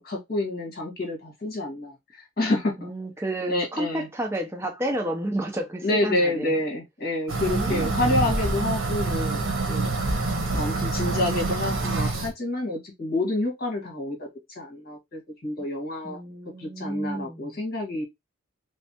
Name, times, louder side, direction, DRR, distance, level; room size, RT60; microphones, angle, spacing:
voice 1, 0.0-2.7 3.5-4.1 5.8-9.9 10.5-16.2 16.6-18.0, left 2 dB, 45° left, 1.6 m, -28 dB
voice 2, 2.8-6.5 7.5-8.3 16.0-17.6, right 1 dB, 10° right, 0.7 m, -31 dB
sound 1, 7.3-12.3, right 3 dB, 75° right, 1.2 m, -26 dB
3.3 x 3.2 x 2.9 m
head